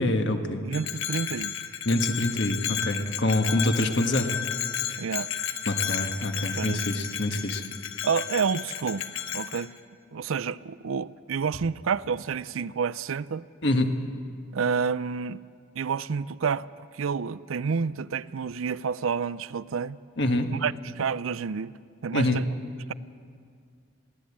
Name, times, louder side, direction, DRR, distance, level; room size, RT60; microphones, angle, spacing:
voice 1, 0.0-0.6 1.8-4.3 5.7-7.6 13.6-13.9 20.2-20.5 22.1-22.4, left 1 dB, 55° left, 1.6 m, -25 dB
voice 2, 0.6-1.6 5.0-5.3 6.5-6.8 8.0-9.7 10.1-13.4 14.5-15.4 15.8-16.7 16.9-20.0 20.5-21.7 22.0-22.5, right 6 dB, 80° right, 0.5 m, -29 dB
Bell, 0.7-9.7, left 9 dB, 80° left, 1.2 m, -33 dB
21.5 x 16.0 x 8.6 m
head